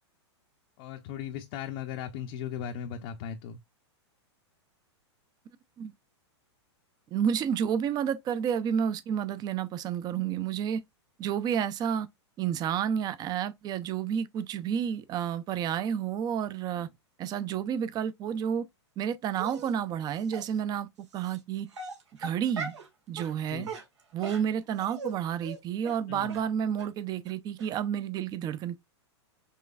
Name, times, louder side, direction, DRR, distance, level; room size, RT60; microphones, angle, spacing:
voice 1, 0.8-3.6 23.5-23.7 26.1-26.3, left 9 dB, 45° left, 0.7 m, -37 dB
voice 2, 7.1-10.8 11.2-12.1 12.4-16.9 17.2-18.6 19.0-21.7 22.2-22.7 23.1-23.7 24.1-28.8, right 8 dB, 25° right, 0.6 m, -30 dB
Dog, 19.4-19.7 20.3-20.4 21.2-21.4 21.7-22.9 23.2-23.3 23.6-25.1 25.4-25.6 25.8-26.0 26.3-26.4 26.8-26.9 27.3-27.4 27.6-27.7, right 4 dB, 85° right, 1.6 m, -39 dB
5.6 x 3.1 x 2.4 m
hypercardioid pair, 120°, 15 cm